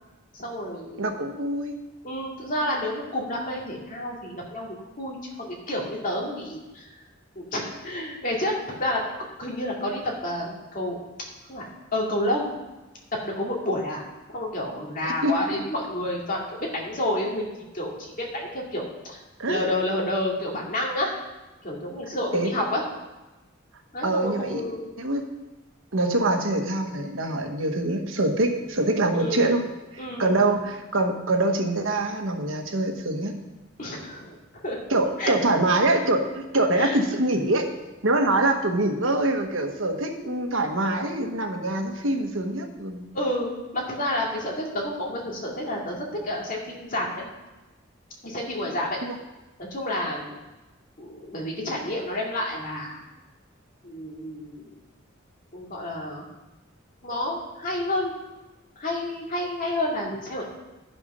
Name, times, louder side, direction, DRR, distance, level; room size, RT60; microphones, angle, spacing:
voice 1, 0.3-1.1 2.0-6.9 7.4-11.0 11.5-12.5 13.1-14.0 14.3-16.4 16.7-17.5 17.7-17.9 18.2-18.8 19.1-19.2 19.5-21.1 21.6-22.8 23.9-24.9 29.1-29.5 30.0-30.3 33.8-34.4 34.6-34.8 35.2-35.3 36.8-37.0 43.1-47.2 48.2-49.0 49.6-50.4 51.0-53.0 53.8-54.7 55.5-56.2 57.0-58.1 58.8-60.5, left 1 dB, 45° left, -2 dB, 2.3 m, -29 dB
voice 2, 1.0-1.7 15.0-15.4 19.4-19.7 22.3-22.5 24.0-24.6 25.0-25.2 25.9-29.7 29.9-33.3 34.9-37.7 38.0-43.1 49.0-49.2, right 2 dB, 90° right, 4 dB, 1.2 m, -24 dB
12.0 x 5.9 x 5.4 m, 1.1 s
head